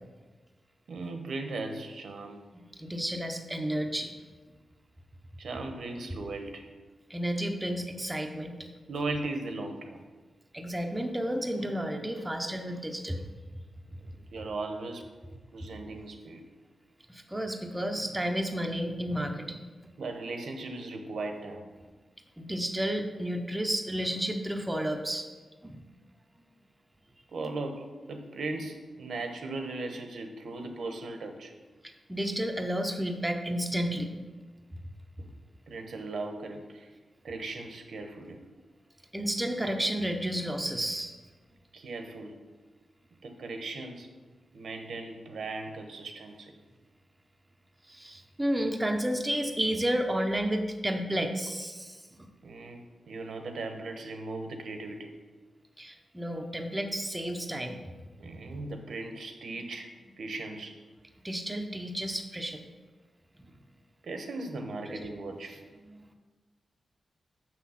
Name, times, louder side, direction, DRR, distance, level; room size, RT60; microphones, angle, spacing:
voice 1, 0.9-2.4 5.4-6.7 8.9-10.0 14.2-15.1 15.5-16.4 20.0-21.7 27.3-31.5 35.2-35.3 35.7-36.9 37.2-38.4 41.7-42.4 43.2-44.1 44.5-46.5 52.4-52.8 53.1-55.1 58.2-60.8 64.0-65.6, right 2 dB, 75° right, 5 dB, 0.9 m, -38 dB
voice 2, 2.8-4.1 7.1-8.5 10.5-13.2 17.1-19.6 22.4-25.3 25.6-25.8 31.8-34.1 39.1-41.1 47.9-52.3 55.8-57.8 61.2-62.6 63.4-63.5 64.9-65.0 65.8-65.9, equal, 10° right, 3 dB, 0.7 m, -31 dB
6.7 x 6.1 x 5.7 m, 1.3 s
wide cardioid pair, 140°, 0 cm